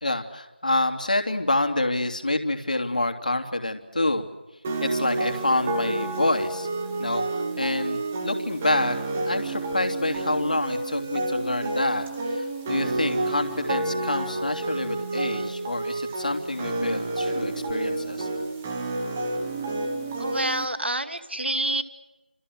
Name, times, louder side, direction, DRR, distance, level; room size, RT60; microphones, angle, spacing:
voice 1, 0.0-4.2 4.8-6.7 7.0-8.9 9.3-18.3, left 2 dB, 45° left, 6 dB, 3.0 m, -27 dB
sound 1, 4.6-20.7, right 2 dB, 5° right, 1.0 m, -29 dB
voice 2, 20.2-21.8, right 1 dB, 85° right, 10 dB, 2.6 m, -27 dB
29.5 x 28.0 x 6.5 m, 1.1 s
figure-of-eight pair, 175°, 6 cm